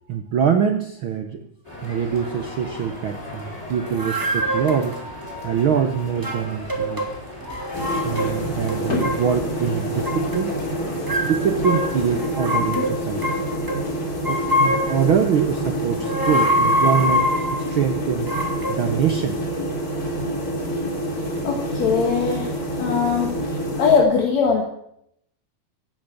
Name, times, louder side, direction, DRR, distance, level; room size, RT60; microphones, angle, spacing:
voice 1, 0.1-1.5 1.8-5.0 5.4-7.0 8.0-10.5 11.2-13.4 14.0-18.3 18.7-19.4, right 7 dB, 75° right, 7 dB, 1.2 m, -24 dB
sound 1, 1.6-12.2, left 1 dB, 10° left, 4.9 m, -37 dB
sound 2, 3.9-5.0 6.1-7.1 7.4-8.4 8.7-9.3 10.0-10.5 11.1-13.8 14.2-15.1 15.9-17.7 18.3-18.7, left 1 dB, 10° right, 1.5 m, -24 dB
sound 3, 7.7-24.0, right 1 dB, 30° left, 2.9 m, -27 dB
voice 2, 21.4-22.5 22.8-23.3 23.8-24.6, left 6 dB, 60° left, 2 dB, 2.8 m, -20 dB
16.0 x 9.1 x 8.4 m, 0.74 s
omnidirectional pair, 3.6 m